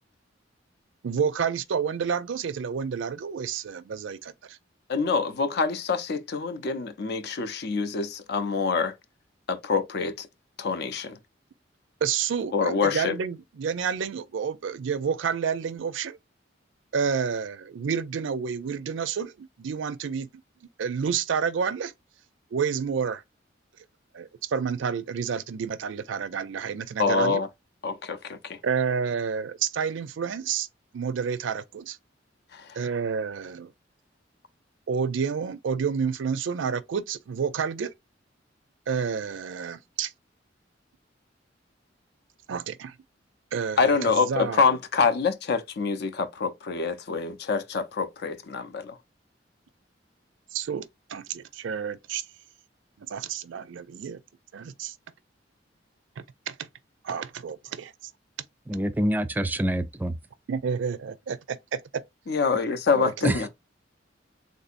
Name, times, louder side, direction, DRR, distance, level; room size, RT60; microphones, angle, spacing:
voice 1, 1.0-4.6 12.0-16.2 16.9-20.3 20.8-21.9 22.5-23.2 24.1-27.4 28.6-30.7 30.9-32.0 32.7-33.7 34.9-37.9 38.9-40.1 42.5-42.9 43.5-44.8 50.5-52.2 53.0-54.2 54.5-54.9 56.2-56.7 57.0-57.9 60.5-62.0 62.9-63.3, right 6 dB, 80° right, 0.4 m, -29 dB
voice 2, 4.9-9.0 9.5-10.3 10.6-11.2 12.5-13.2 27.0-27.5 27.8-28.6 32.5-32.8 43.8-49.0 62.3-63.5, left 5 dB, 60° left, 0.5 m, -26 dB
voice 3, 58.7-60.1 63.2-63.5, right 1 dB, 10° right, 0.3 m, -26 dB
3.6 x 2.6 x 2.5 m
head